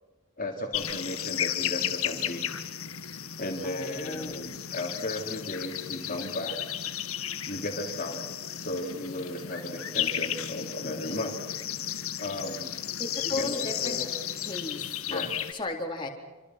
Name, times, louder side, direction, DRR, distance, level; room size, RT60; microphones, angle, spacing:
voice 1, 0.4-2.5 3.4-6.6 7.4-8.2 8.6-11.4 12.2-12.8 13.2-14.1 15.1-15.3, left 1 dB, 40° left, 1 dB, 3.7 m, -35 dB
sound 1, 0.7-15.5, left 10 dB, 90° left, 1.9 m, -34 dB
voice 2, 3.6-4.5 13.0-14.0 14.4-14.8 15.1-15.2 15.5-16.1, left 2 dB, 25° left, 0 dB, 4.1 m, -35 dB
28.0 x 26.5 x 6.1 m, 1.3 s
head